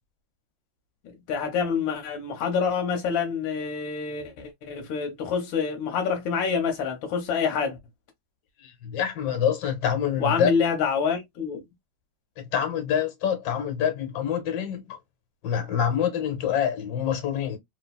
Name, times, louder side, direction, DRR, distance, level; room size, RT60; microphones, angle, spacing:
voice 1, 1.0-7.8 10.2-11.6, left 6 dB, 90° left, 1.4 m, -27 dB
voice 2, 8.6-10.5 12.5-15.0 15.4-17.6, left 8 dB, 75° left, 1.6 m, -26 dB
3.2 x 2.5 x 2.2 m
omnidirectional pair, 2.0 m